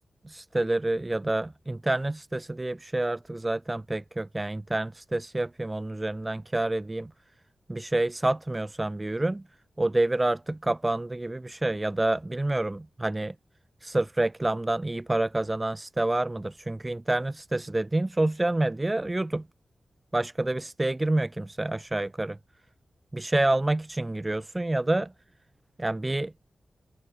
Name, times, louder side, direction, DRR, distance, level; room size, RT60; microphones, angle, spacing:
voice 1, 0.2-7.1 7.7-9.4 9.8-13.3 13.8-19.4 20.1-22.4 23.1-25.1 25.8-26.3, right 2 dB, 20° right, 6.3 m, -28 dB
cardioid pair, 65°, 0 cm